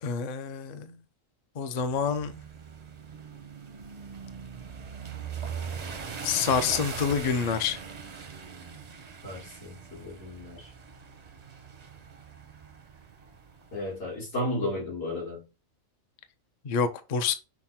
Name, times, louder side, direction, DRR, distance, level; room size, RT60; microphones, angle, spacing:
voice 1, 0.0-1.0 1.6-2.3 6.2-7.8 16.6-17.3, left 6 dB, 55° left, 0.4 m, -27 dB
sound 1, 1.8-13.9, right 6 dB, 45° right, 0.5 m, -41 dB
voice 2, 9.2-10.7 13.7-15.4, left 1 dB, 80° left, 2.6 m, -34 dB
5.9 x 2.1 x 4.1 m
omnidirectional pair, 1.4 m